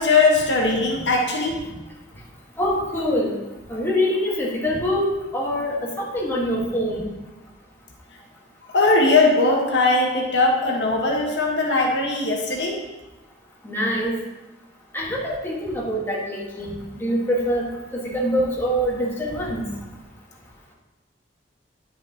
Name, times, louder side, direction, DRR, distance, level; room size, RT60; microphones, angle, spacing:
voice 1, 0.0-1.8 8.7-12.8, left 3 dB, 75° left, 0 dB, 1.3 m, -20 dB
voice 2, 2.6-3.3 3.7-7.1 13.6-14.1 14.9-16.7 17.0-17.6 17.9-19.6, equal, 15° left, -4 dB, 1.5 m, -24 dB
9.8 x 6.3 x 2.8 m, 1.0 s
head